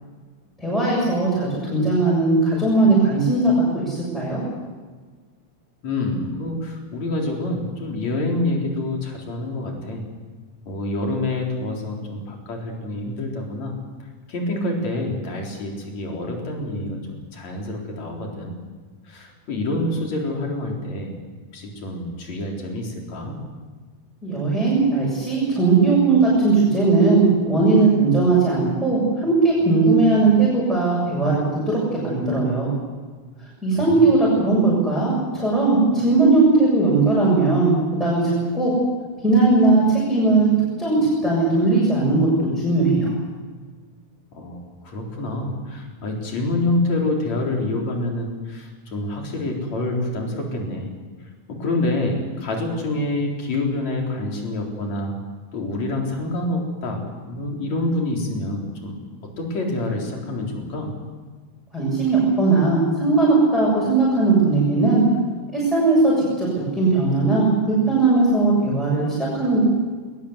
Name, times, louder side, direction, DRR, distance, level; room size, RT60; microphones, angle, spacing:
voice 1, 0.6-4.4 24.2-32.7 33.6-38.7 39.2-43.1 61.7-65.0 65.5-69.7, right 3 dB, ahead, -7 dB, 6.9 m, -18 dB
voice 2, 5.8-10.1 10.7-13.7 14.3-18.6 19.1-21.2 21.5-23.4 33.8-34.0 44.3-50.9 51.5-55.2 55.5-60.9, left 2 dB, 60° left, 0 dB, 5.2 m, -27 dB
21.0 x 21.0 x 8.1 m, 1.5 s
omnidirectional pair, 3.5 m